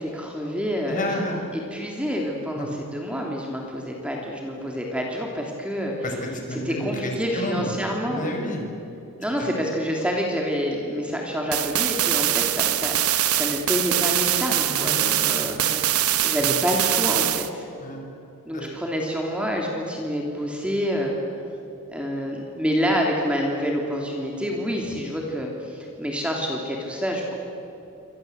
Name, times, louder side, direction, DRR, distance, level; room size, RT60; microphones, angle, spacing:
voice 1, 0.0-1.1 1.5-5.9 6.5-8.3 9.2-15.8 16.2-17.7 18.5-21.1 21.9-27.4, equal, 5° right, 0 dB, 3.0 m, -27 dB
voice 2, 0.9-1.4 2.6-2.7 6.0-8.7 9.4-9.5 14.7-15.1 15.4-15.7 16.4-16.5 17.8-18.0 18.5-18.7, left 1 dB, 35° left, 2 dB, 5.7 m, -31 dB
sound 1, 11.5-17.5, right 12 dB, 80° right, 1.4 m, -23 dB
28.0 x 25.5 x 8.1 m, 2.9 s
head